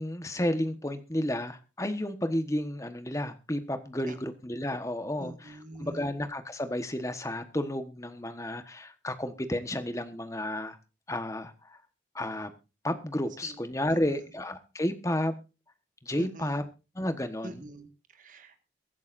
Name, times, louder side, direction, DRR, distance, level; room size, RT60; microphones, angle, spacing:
voice 1, 0.0-10.8 11.1-11.8 12.1-12.5 12.8-15.3 16.0-16.6 16.9-17.7, left 1 dB, 15° left, 9 dB, 1.3 m, -32 dB
voice 2, 5.2-6.1 13.4-13.6 13.9-14.3 16.2-16.6 17.4-18.6, right 1 dB, 45° right, 7 dB, 1.8 m, -45 dB
23.5 x 10.5 x 2.6 m, 0.30 s
head